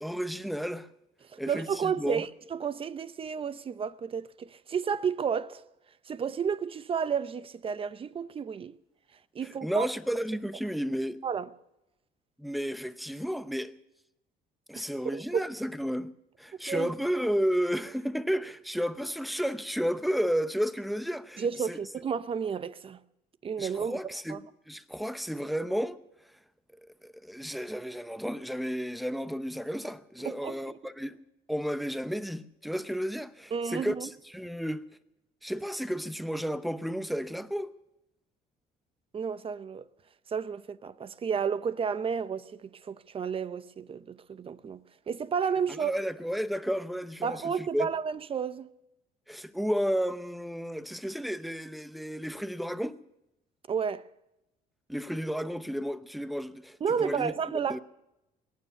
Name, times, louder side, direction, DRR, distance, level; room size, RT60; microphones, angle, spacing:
voice 1, 0.0-0.9 1.4-2.2 9.6-11.2 12.4-13.7 14.7-16.1 16.4-21.8 23.6-26.0 27.0-31.2 31.5-34.8 35.4-37.7 45.8-47.9 49.3-53.0 54.9-57.8, equal, ahead, 0.7 m, -32 dB
voice 2, 1.3-5.6 6.1-8.7 9.3-9.9 11.2-11.5 14.7-14.8 15.1-15.5 16.7-16.9 21.4-23.0 23.4-24.0 24.3-24.4 30.2-30.8 33.5-34.1 39.1-39.9 40.3-45.9 47.2-48.7 53.7-54.1 56.8-57.8, right 6 dB, 35° right, 0.7 m, -32 dB
21.5 x 9.4 x 7.0 m
cardioid pair, 110°, 17 cm